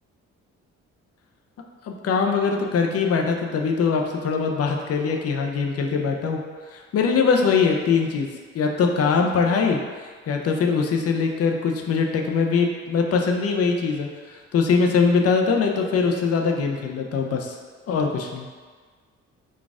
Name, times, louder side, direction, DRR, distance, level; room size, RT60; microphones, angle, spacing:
voice 1, 1.8-6.4 6.7-8.3 8.5-9.8 10.3-17.5 17.9-18.5, left 5 dB, 55° left, 2 dB, 0.5 m, -22 dB
4.0 x 2.4 x 3.6 m, 1.5 s
cardioid pair, 90°, 30 cm